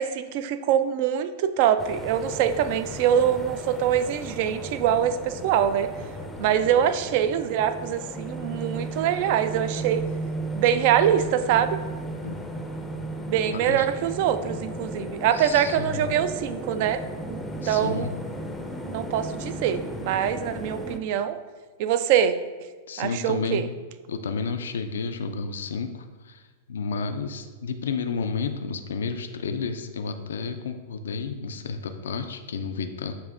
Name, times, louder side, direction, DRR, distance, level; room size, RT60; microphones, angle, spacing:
voice 1, 0.0-5.9 6.4-10.0 10.5-11.8 13.2-17.0 17.3-17.4 17.7-18.1 18.9-21.4 21.8-22.3 23.0-23.7, right 9 dB, 55° right, 11 dB, 0.3 m, -24 dB
sound 1, 1.8-21.0, right 1 dB, 5° left, 0.5 m, -35 dB
voice 2, 13.5-13.9 15.3-16.1 17.6-18.2 22.9-23.7 24.1-33.1, left 5 dB, 75° left, 7 dB, 0.3 m, -31 dB
6.8 x 2.6 x 2.5 m, 1.4 s
hypercardioid pair, 105°, 0 cm